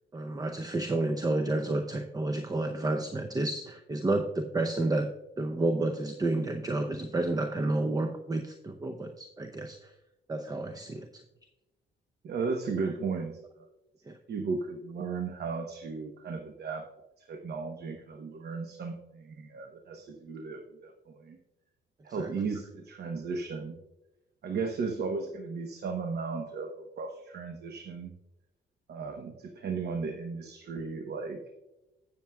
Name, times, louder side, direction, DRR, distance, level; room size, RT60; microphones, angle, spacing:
voice 1, 0.1-5.1 5.4-9.9 10.3-11.1 14.1-14.2 22.1-22.3, right 2 dB, 20° right, 6 dB, 0.6 m, -30 dB
voice 2, 12.2-13.7 14.3-16.8 17.2-21.4 22.0-23.7 24.4-28.1 28.9-31.4, right 4 dB, 55° right, 4 dB, 1.0 m, -35 dB
17.0 x 7.1 x 2.3 m, 0.97 s
cardioid pair, 90°, 20 cm